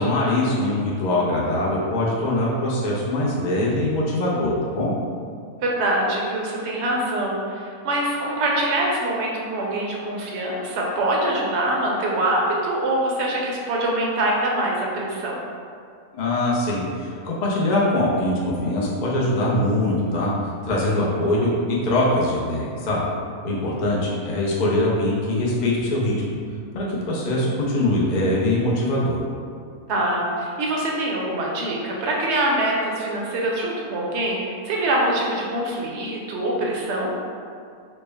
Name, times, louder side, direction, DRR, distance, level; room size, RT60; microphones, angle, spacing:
voice 1, 0.0-4.9 16.1-20.3 20.6-21.5 21.8-23.0 23.4-26.3 26.7-29.2, left 1 dB, 60° left, -5 dB, 0.4 m, -22 dB
voice 2, 5.6-15.4 23.9-24.1 29.9-37.1, right 1 dB, 60° right, -2 dB, 0.8 m, -24 dB
4.2 x 2.0 x 3.4 m, 2.3 s
omnidirectional pair, 1.5 m